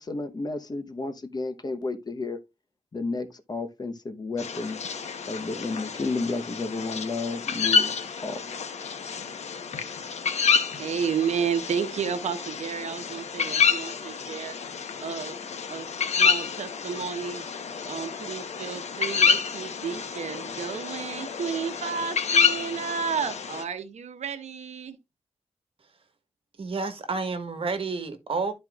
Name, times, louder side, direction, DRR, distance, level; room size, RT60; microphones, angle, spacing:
voice 1, 0.0-2.4 2.9-4.8 5.3-7.9 8.2-8.4, left 3 dB, 35° left, 0.9 m, -32 dB
sound 1, 4.4-23.6, left 6 dB, 80° left, 0.9 m, -28 dB
voice 2, 10.8-14.6 15.0-15.4 15.7-15.9 16.2-17.4 17.9-25.0, right 6 dB, 85° right, 0.9 m, -32 dB
voice 3, 26.6-28.5, right 4 dB, 55° right, 1.4 m, -30 dB
12.5 x 4.4 x 2.4 m
wide cardioid pair, 105°, 11 cm